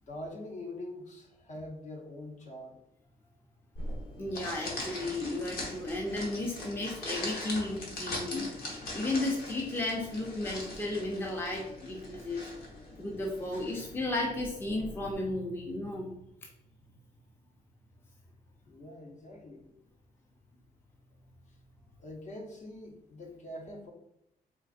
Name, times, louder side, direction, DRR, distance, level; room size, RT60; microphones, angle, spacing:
voice 1, 0.1-2.8 18.7-19.7 22.0-23.9, left 1 dB, 50° left, 1 dB, 0.9 m, -44 dB
sound 1, 3.8-15.1, left 1 dB, 75° left, 1.2 m, -41 dB
voice 2, 4.2-8.4 8.9-12.4 13.0-16.2, left 2 dB, 15° left, 0 dB, 0.6 m, -34 dB
4.0 x 3.9 x 2.5 m, 0.82 s
cardioid pair, 155°, 16 cm